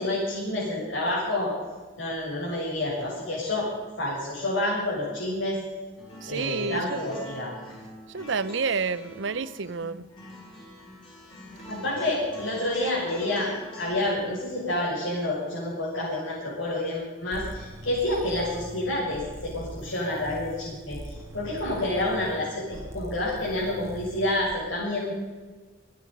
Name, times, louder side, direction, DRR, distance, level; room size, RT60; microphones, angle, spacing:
voice 1, 0.0-1.5 2.0-3.7 4.0-5.6 6.3-7.5 11.7-13.5 13.8-25.1, left 1 dB, 85° left, -9 dB, 6.8 m, -28 dB
sound 1, 6.0-13.8, equal, 25° left, 5.8 m, -45 dB
voice 2, 6.2-7.0 8.1-10.1, right 5 dB, 70° right, 17 dB, 0.7 m, -29 dB
sound 2, 17.3-24.6, right 1 dB, 15° right, 1.5 m, -42 dB
26.5 x 9.6 x 5.4 m, 1.4 s
head